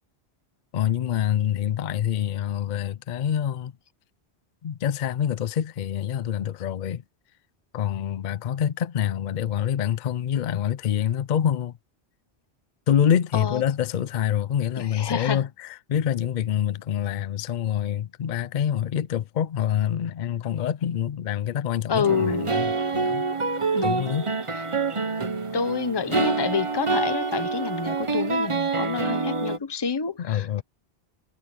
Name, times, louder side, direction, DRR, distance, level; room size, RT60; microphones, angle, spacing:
voice 1, 0.7-3.7 4.6-7.0 7.7-11.7 12.9-23.3 23.8-24.3 30.2-30.6, left 9 dB, 55° left, 0.6 m, -26 dB
voice 2, 14.8-15.4 21.9-22.5 23.7-24.1 24.5-24.6 25.5-30.6, left 5 dB, 25° left, 1.0 m, -28 dB
sound 1, 22.0-29.6, right 4 dB, 30° right, 1.1 m, -26 dB
omnidirectional pair, 1.1 m